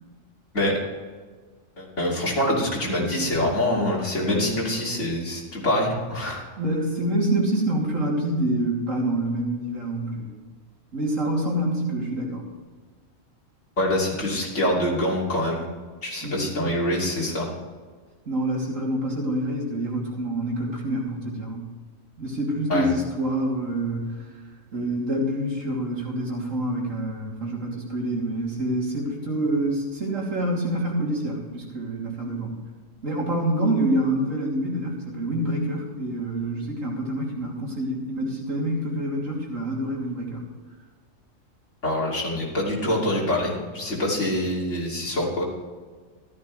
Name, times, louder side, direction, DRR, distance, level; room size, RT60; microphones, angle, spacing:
voice 1, 1.8-6.4 13.8-15.6 16.0-17.5 22.7-22.9 41.8-45.4, left 1 dB, 60° left, -4 dB, 3.3 m, -25 dB
voice 2, 6.6-10.3 10.9-12.4 16.2-16.7 18.3-21.7 22.2-24.2 24.7-32.5 33.0-40.4, right 1 dB, 75° right, -3 dB, 3.4 m, -26 dB
14.0 x 13.0 x 3.3 m, 1.5 s
omnidirectional pair, 1.4 m